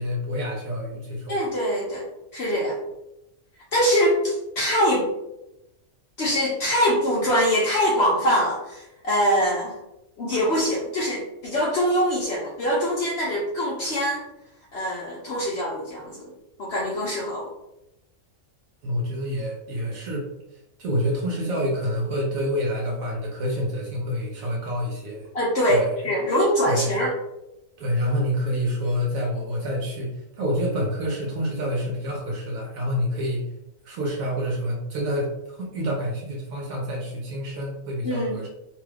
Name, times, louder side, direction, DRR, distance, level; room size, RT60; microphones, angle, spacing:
voice 1, 0.0-1.4 18.8-25.3 25.7-25.9 26.7-27.0 27.8-33.5 33.8-38.5, equal, 80° right, -2 dB, 1.0 m, -27 dB
voice 2, 1.3-2.1 2.3-2.8 3.7-5.1 6.2-9.8 10.2-14.2 14.7-16.3 16.6-17.5 25.3-27.1 38.0-38.4, equal, 60° left, -4 dB, 0.7 m, -23 dB
2.7 x 2.3 x 3.3 m, 0.91 s
omnidirectional pair, 1.4 m